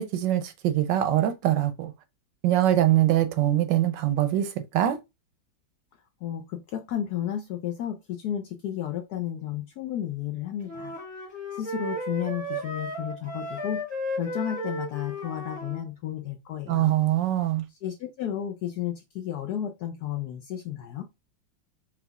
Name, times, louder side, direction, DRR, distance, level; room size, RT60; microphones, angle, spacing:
voice 1, 0.0-1.9 2.4-5.0 16.7-17.6, right 12 dB, 75° right, 1.1 m, -23 dB
voice 2, 6.2-11.0 11.5-13.8 14.2-16.9 17.7-21.0, left 10 dB, 75° left, 0.9 m, -32 dB
sound 1, 10.6-15.8, equal, 5° right, 0.9 m, -34 dB
4.7 x 3.7 x 2.3 m
omnidirectional pair, 2.1 m